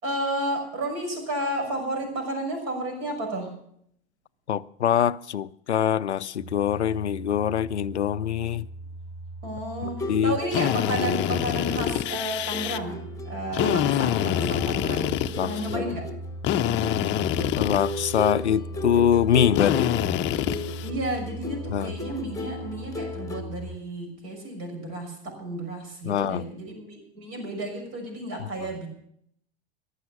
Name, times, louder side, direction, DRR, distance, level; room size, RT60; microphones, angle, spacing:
voice 1, 0.0-3.6 9.4-15.2 15.4-16.1 20.8-28.9, right 1 dB, 50° right, 6.1 m, -32 dB
voice 2, 4.5-8.7 10.1-10.4 14.0-14.1 15.4-15.9 17.5-19.9 21.7-21.9 26.0-26.4 28.4-28.7, left 9 dB, 80° left, 0.5 m, -24 dB
sound 1, 6.4-23.8, right 1 dB, 20° right, 4.6 m, -39 dB
sound 2, 9.8-23.4, left 2 dB, 10° left, 1.5 m, -35 dB
Drill, 10.5-12.8 13.5-15.8 16.4-18.3 19.5-20.9, left 12 dB, 35° left, 0.7 m, -26 dB
15.0 x 11.5 x 6.2 m
figure-of-eight pair, 80°, 33 cm